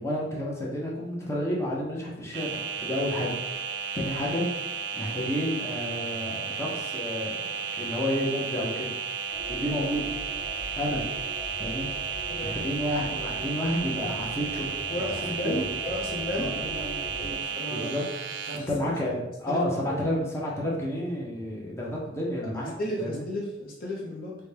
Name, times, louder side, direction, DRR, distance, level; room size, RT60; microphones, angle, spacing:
voice 1, 0.0-3.7 3.9-4.6 4.9-7.3 7.8-8.9 9.5-10.0 10.7-11.0 11.6-11.9 12.5-14.7 15.0-15.1 15.4-15.7 16.3-16.5 17.7-18.0 18.5-22.7 23.0-23.2, left 1 dB, 15° left, -4 dB, 0.8 m, -30 dB
sound 1, 2.3-18.6, right 7 dB, 75° right, 0.5 m, -33 dB
sound 2, 9.3-17.3, equal, 10° right, 1.2 m, -42 dB
voice 2, 12.3-12.6 14.9-17.9 18.5-18.9 19.5-19.6 19.9-20.0 22.8-24.3, left 1 dB, 50° left, -3 dB, 0.8 m, -34 dB
4.0 x 2.2 x 3.3 m, 0.89 s
head